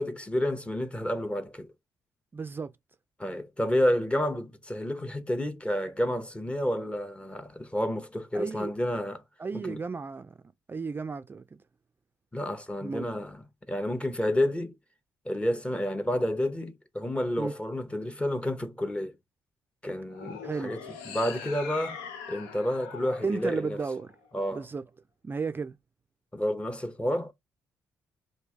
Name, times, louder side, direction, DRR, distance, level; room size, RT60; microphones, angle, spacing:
voice 1, 0.0-1.7 3.2-9.2 9.5-9.8 12.3-13.4 13.7-14.7 15.2-19.1 19.8-22.0 22.3-23.8 24.3-24.7 26.3-27.3, left 1 dB, 15° left, 0.8 m, -30 dB
voice 2, 2.3-2.7 8.3-8.7 9.4-10.4 10.7-11.4 12.8-13.1 17.4-17.5 20.4-20.8 23.2-24.1 24.5-24.8 25.2-25.8, right 4 dB, 30° right, 0.3 m, -33 dB
sound 1, 20.1-24.5, left 6 dB, 90° left, 0.6 m, -42 dB
3.0 x 2.7 x 3.6 m
supercardioid pair, 55°, 8 cm